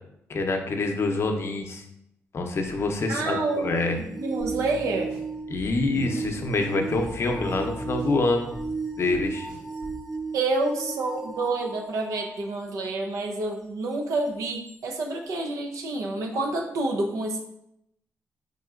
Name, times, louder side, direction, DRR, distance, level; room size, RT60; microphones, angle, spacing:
voice 1, 0.3-1.8 2.3-4.0 5.5-8.5 9.0-9.5, left 3 dB, 50° left, 4 dB, 0.6 m, -26 dB
sound 1, 2.6-12.4 14.7-14.8, right 4 dB, 5° right, 0.6 m, -35 dB
voice 2, 3.1-5.1 10.3-17.4, right 2 dB, 80° right, 1 dB, 0.5 m, -28 dB
sound 2, 4.4-10.1, left 1 dB, 60° right, 1.3 m, -41 dB
4.1 x 3.7 x 2.4 m, 0.78 s
cardioid pair, 70°, 5 cm